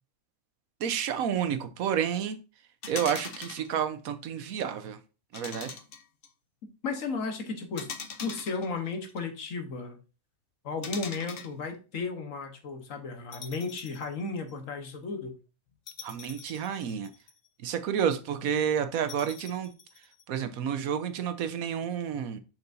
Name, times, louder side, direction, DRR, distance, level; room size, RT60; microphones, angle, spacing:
voice 1, 0.8-2.4 2.9-5.0 5.3-5.8 16.0-17.1 17.6-19.7 20.3-22.4, right 8 dB, 85° right, 1.2 m, -30 dB
sound 1, 2.8-3.7 5.3-6.3 7.8-9.2 10.8-11.5 13.3-14.1 14.5-14.6 15.9-17.5 19.1-20.2, left 6 dB, 50° left, 0.9 m, -42 dB
voice 2, 6.8-7.9 8.2-10.0 10.6-15.3, left 4 dB, 70° left, 1.5 m, -34 dB
6.7 x 5.9 x 2.6 m
omnidirectional pair, 1.4 m